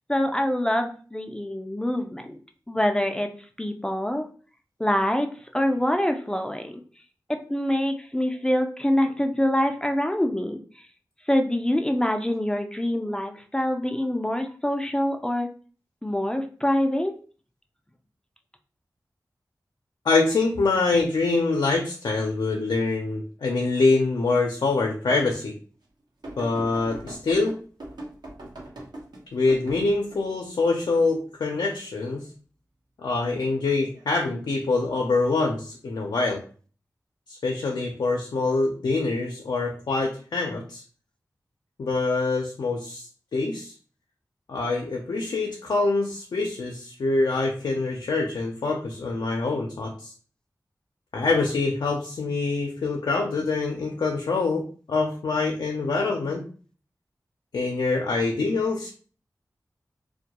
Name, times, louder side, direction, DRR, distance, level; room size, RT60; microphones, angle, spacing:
voice 1, 0.1-2.4 2.7-3.3 3.6-4.3 4.8-6.7 7.3-10.9 11.3-15.5 16.0-17.2, left 1 dB, 10° left, 5 dB, 0.3 m, -25 dB
voice 2, 20.0-25.5 26.4-27.5 29.3-32.3 33.0-36.4 37.3-40.8 41.8-43.7 44.5-50.1 51.1-56.5 57.5-58.9, left 3 dB, 85° left, 1 dB, 0.4 m, -25 dB
sound 1, 26.2-30.2 33.7-34.0 35.2-35.3, right 1 dB, 75° right, 0.8 m, -40 dB
2.2 x 2.1 x 2.8 m, 0.40 s
cardioid pair, 50°, 7 cm